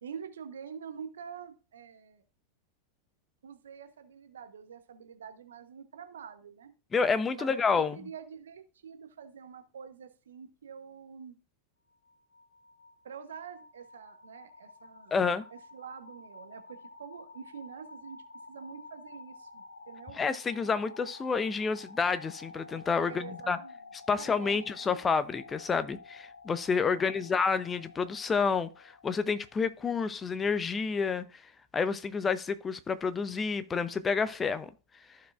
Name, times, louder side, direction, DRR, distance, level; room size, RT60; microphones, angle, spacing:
voice 1, 0.0-2.2 3.4-6.7 7.3-11.4 13.0-15.2 15.5-18.2 18.5-20.2 23.0-23.8 24.1-25.0 26.9-27.4, right 7 dB, 65° right, 0.9 m, -46 dB
voice 2, 6.9-8.0 15.1-15.4 20.1-23.6 24.1-31.2 31.7-34.7, left 5 dB, 20° left, 0.6 m, -29 dB
sound 1, 11.9-29.8, left 3 dB, 75° left, 0.6 m, -51 dB
14.0 x 4.8 x 2.4 m
figure-of-eight pair, 90°, 0 cm